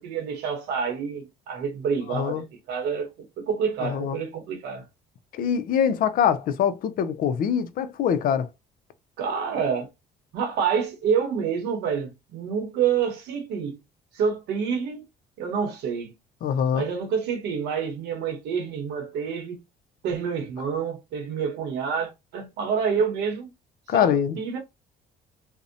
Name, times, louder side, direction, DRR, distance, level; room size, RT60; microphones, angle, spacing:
voice 1, 0.0-4.9 9.2-9.9 10.3-13.8 14.1-15.1 15.4-16.1 16.7-19.6 20.0-23.5 23.9-24.1 24.4-24.6, right 6 dB, 85° right, 0.8 m, -28 dB
voice 2, 2.1-2.4 3.8-4.2 5.3-8.5 16.4-16.8 23.9-24.4, left 8 dB, 55° left, 0.4 m, -23 dB
2.6 x 2.0 x 2.5 m
cardioid pair, 110°, 17 cm